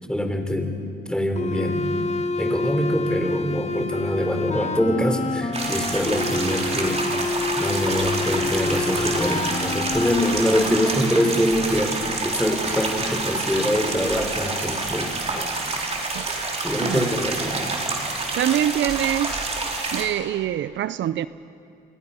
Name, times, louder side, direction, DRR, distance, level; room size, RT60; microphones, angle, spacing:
voice 1, 0.1-0.8 1.1-1.9 2.4-7.0 7.6-15.5 16.6-17.6, equal, 5° left, 3.4 m, -24 dB
sound 1, 1.4-10.6, left 3 dB, 35° left, 1.4 m, -28 dB
sound 2, 5.5-20.0, right 3 dB, 30° right, 3.8 m, -28 dB
voice 2, 18.4-19.4 19.9-21.3, right 11 dB, 70° right, 0.5 m, -24 dB
29.5 x 24.0 x 5.6 m
cardioid pair, 90°, 20 cm